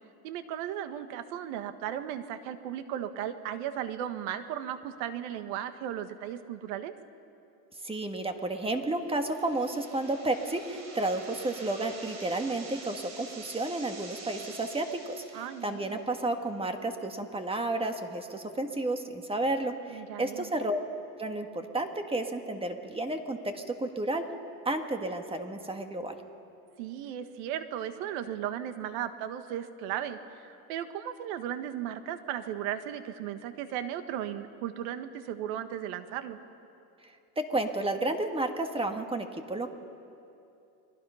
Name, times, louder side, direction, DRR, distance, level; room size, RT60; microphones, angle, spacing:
voice 1, 0.2-6.9 15.3-16.0 19.9-20.5 26.8-36.4, right 10 dB, 75° right, 9 dB, 1.7 m, -36 dB
voice 2, 7.8-20.8 21.2-24.3 24.6-26.1 37.0-39.7, right 2 dB, 15° right, 6 dB, 1.7 m, -32 dB
sound 1, 9.1-16.1, right 3 dB, 40° right, 4.7 m, -47 dB
30.0 x 22.0 x 5.7 m, 2.7 s
supercardioid pair, 125°, 42 cm